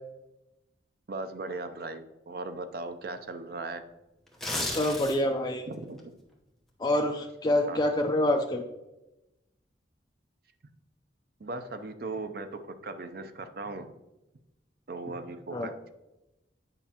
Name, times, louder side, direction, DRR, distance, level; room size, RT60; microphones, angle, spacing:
voice 1, 1.1-3.8 5.7-6.0 7.7-7.8 11.4-13.9 14.9-15.9, right 3 dB, 55° right, 9 dB, 0.5 m, -38 dB
sound 1, 4.3-5.4 5.8-6.0, left 1 dB, ahead, 0.8 m, -33 dB
voice 2, 4.7-5.6 6.8-8.6 15.5-15.7, left 1 dB, 20° left, 2 dB, 0.4 m, -26 dB
9.0 x 5.2 x 2.9 m, 0.97 s
head